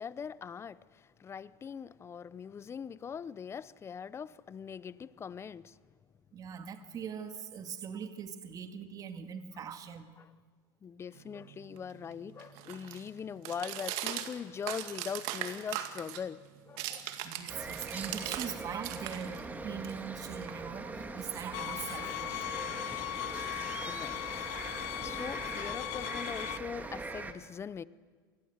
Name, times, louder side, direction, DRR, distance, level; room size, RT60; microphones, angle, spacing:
voice 1, 0.0-5.8 10.2-10.3 10.8-16.4 16.7-17.1 22.8-27.8, left 7 dB, 25° left, 0.7 m, -42 dB
voice 2, 6.3-10.1 17.2-22.5, right 7 dB, 35° right, 2.0 m, -41 dB
sound 1, 11.1-18.5 18.8-21.0, right 12 dB, 65° right, 2.1 m, -41 dB
sound 2, 17.5-27.3, right 3 dB, 15° right, 1.9 m, -42 dB
sound 3, 21.5-26.6, left 17 dB, 70° left, 0.9 m, -38 dB
26.5 x 20.5 x 8.0 m
supercardioid pair, 120°, 11 cm